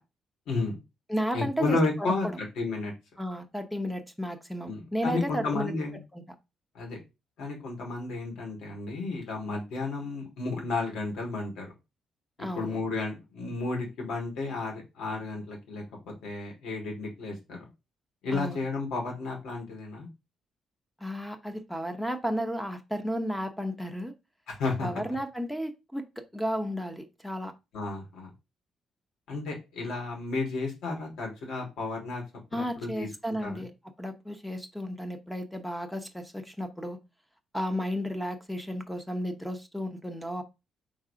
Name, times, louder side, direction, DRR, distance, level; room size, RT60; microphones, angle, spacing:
voice 1, 0.5-0.8 1.3-2.9 4.6-6.0 6.7-7.0 7.4-11.7 12.5-17.6 18.2-20.1 24.5-24.9 27.7-28.3 29.3-32.2 32.5-33.1 33.4-33.6, left 3 dB, 90° left, 1 dB, 3.3 m, -32 dB
voice 2, 1.1-2.4 3.2-5.7 6.1-6.2 12.4-12.8 18.3-18.6 21.0-24.1 24.8-27.5 32.5-33.7 34.0-37.0 37.5-40.4, equal, 5° left, 8 dB, 0.9 m, -33 dB
4.7 x 4.0 x 5.0 m, 0.25 s
cardioid pair, 155°, 0 cm